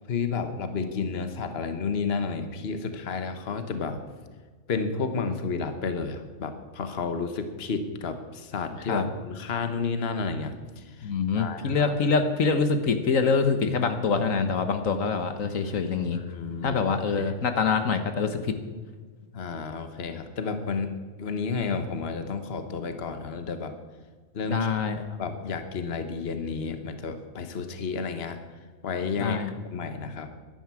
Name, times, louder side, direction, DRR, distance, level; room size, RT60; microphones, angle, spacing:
voice 1, 0.1-4.0 4.7-11.9 16.1-17.3 19.3-23.7 24.3-24.7 25.2-28.4 28.8-30.3, left 5 dB, 50° left, 8 dB, 1.4 m, -31 dB
voice 2, 11.0-16.2 16.6-18.5 24.5-25.0 29.2-29.5, left 5 dB, 70° left, 8 dB, 1.5 m, -25 dB
12.0 x 11.0 x 9.6 m, 1.4 s
omnidirectional pair, 1.4 m